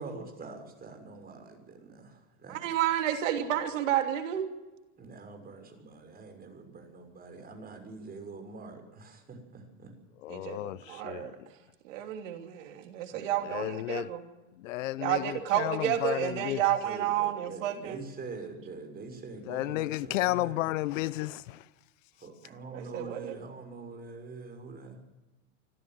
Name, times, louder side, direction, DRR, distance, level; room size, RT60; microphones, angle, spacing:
voice 1, 0.0-2.8 5.0-10.0 10.9-11.0 13.1-13.7 16.8-20.7 22.2-25.0, right 4 dB, 25° right, 6.3 m, -45 dB
voice 2, 2.5-4.4 10.3-11.4 11.8-14.2 15.0-18.0 22.7-23.3, right 11 dB, 75° right, 3.1 m, -31 dB
voice 3, 10.2-11.5 13.4-14.1 14.6-16.6 19.5-21.7, left 16 dB, 80° left, 0.9 m, -33 dB
25.0 x 15.0 x 7.6 m
supercardioid pair, 115°, 38 cm